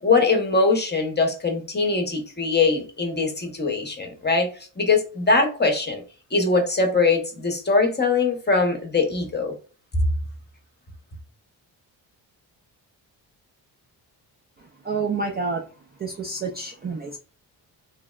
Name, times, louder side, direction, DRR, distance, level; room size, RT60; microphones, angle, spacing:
voice 1, 0.0-4.5 4.8-6.0 6.3-9.5, left 3 dB, 20° left, 0.8 m, -22 dB
voice 2, 14.8-15.6 16.0-17.2, right 4 dB, 25° right, 0.4 m, -28 dB
2.9 x 2.0 x 2.2 m
supercardioid pair, 60°, 47 cm